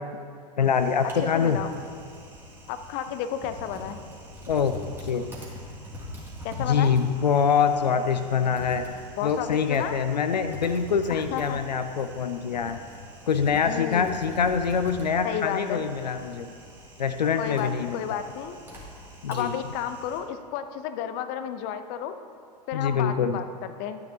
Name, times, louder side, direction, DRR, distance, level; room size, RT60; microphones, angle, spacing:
voice 1, 0.6-1.6 4.5-4.8 5.0-5.2 6.6-8.8 9.2-12.8 13.3-16.5 17.0-18.2 19.2-19.5 22.7-23.4, left 6 dB, 80° left, 9 dB, 0.5 m, -24 dB
Typing, 0.6-20.2, left 1 dB, 10° right, 2.3 m, -44 dB
voice 2, 1.2-1.7 2.7-4.0 6.4-6.9 9.2-10.0 11.1-11.6 13.7-14.2 15.2-15.9 17.4-18.6 19.3-22.2 22.7-24.0, left 9 dB, 45° left, 10 dB, 0.6 m, -32 dB
13.0 x 9.2 x 2.8 m, 2.3 s
figure-of-eight pair, 90°, 21 cm